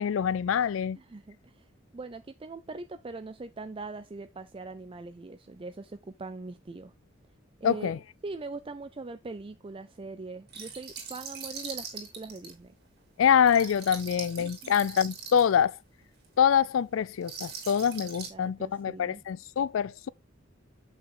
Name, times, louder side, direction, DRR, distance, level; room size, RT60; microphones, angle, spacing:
voice 1, 0.0-1.0 7.6-8.0 13.2-15.8 16.4-20.1, left 8 dB, 85° left, 0.4 m, -25 dB
voice 2, 1.0-6.9 7.6-7.9 8.2-12.7 14.4-14.7 18.3-19.2, right 3 dB, 30° right, 0.5 m, -41 dB
sound 1, 10.5-12.5 13.5-15.5 16.2-16.3 17.2-18.3, right 6 dB, 55° right, 3.0 m, -41 dB
8.1 x 6.3 x 3.7 m
head